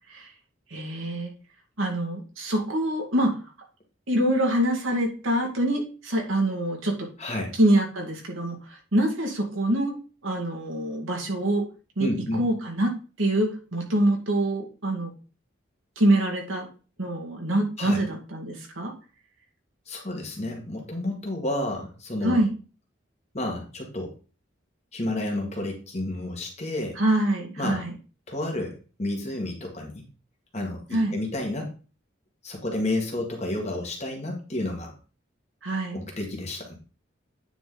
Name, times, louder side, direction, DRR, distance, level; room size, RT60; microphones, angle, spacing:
voice 1, 0.7-1.3 1.8-3.4 4.1-7.1 7.5-10.0 10.2-11.6 12.0-12.1 12.4-12.9 13.2-15.1 16.0-16.7 17.0-18.9 22.2-22.5 27.0-27.9 30.9-31.2 35.6-36.0, right 1 dB, 85° right, 1 dB, 2.0 m, -25 dB
voice 2, 7.2-7.5 12.0-12.5 17.8-18.0 19.9-22.4 23.3-24.1 24.9-27.0 27.6-27.8 28.3-30.0 30.5-31.7 32.4-34.9 35.9-36.8, left 1 dB, 35° left, 1 dB, 1.9 m, -31 dB
9.2 x 4.2 x 3.9 m, 0.35 s
head